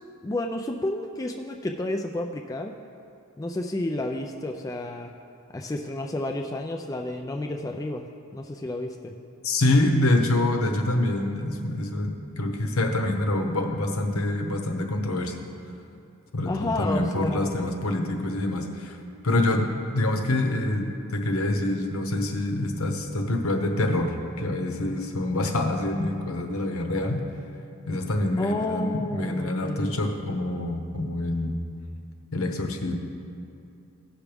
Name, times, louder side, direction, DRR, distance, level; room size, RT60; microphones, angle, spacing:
voice 1, 0.2-2.8 3.4-5.1 5.5-8.1 8.3-9.1 16.5-17.5 28.4-30.0, left 1 dB, 15° left, 3 dB, 0.3 m, -31 dB
voice 2, 9.4-15.4 16.3-19.0 19.2-27.2 27.9-31.5 32.3-33.0, left 1 dB, 75° left, 4 dB, 1.0 m, -26 dB
16.0 x 6.0 x 3.4 m, 2.6 s
head